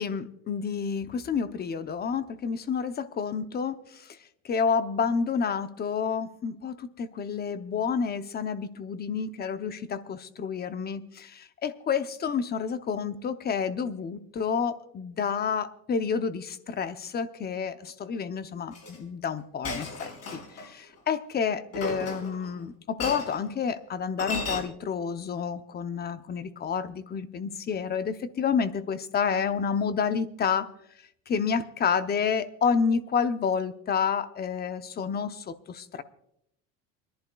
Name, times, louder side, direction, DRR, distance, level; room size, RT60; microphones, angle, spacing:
voice 1, 0.0-4.0 4.4-30.7 31.3-36.0, left 6 dB, 30° left, 11 dB, 0.7 m, -29 dB
Chink clink, 18.7-19.0 19.6-20.7 21.7-22.5 23.0-23.4 24.2-24.6, left 3 dB, 50° left, 4.9 m, -34 dB
29.0 x 11.0 x 2.3 m, 0.75 s
cardioid pair, 120°, 32 cm